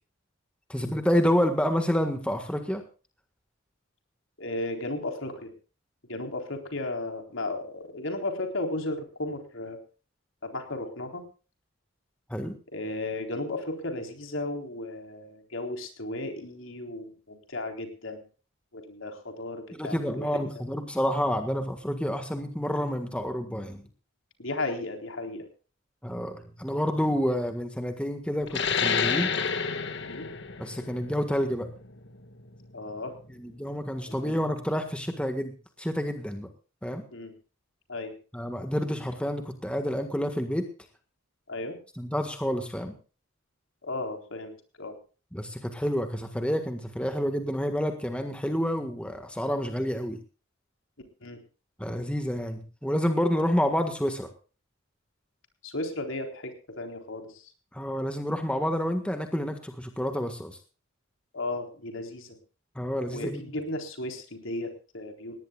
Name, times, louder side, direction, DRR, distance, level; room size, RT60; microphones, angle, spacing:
voice 1, 0.7-2.8 12.3-12.6 19.7-23.8 26.0-29.3 30.6-31.7 33.4-36.5 36.8-37.0 38.3-40.7 42.0-42.9 45.3-50.2 51.8-54.3 57.7-60.6 62.7-63.5, equal, 5° left, 6 dB, 1.6 m, -29 dB
voice 2, 4.4-5.5 6.1-9.8 10.4-11.2 12.7-18.2 18.7-20.3 24.4-25.5 30.0-30.3 32.7-33.2 34.0-34.4 37.1-37.3 37.9-38.1 41.5-41.8 43.8-44.5 44.8-45.0 51.2-51.4 55.6-57.5 61.3-62.4 63.1-65.4, left 2 dB, 70° left, 4 dB, 4.0 m, -35 dB
sound 1, 28.5-33.6, left 6 dB, 55° left, 1.7 m, -30 dB
19.5 x 18.5 x 2.4 m, 0.37 s
head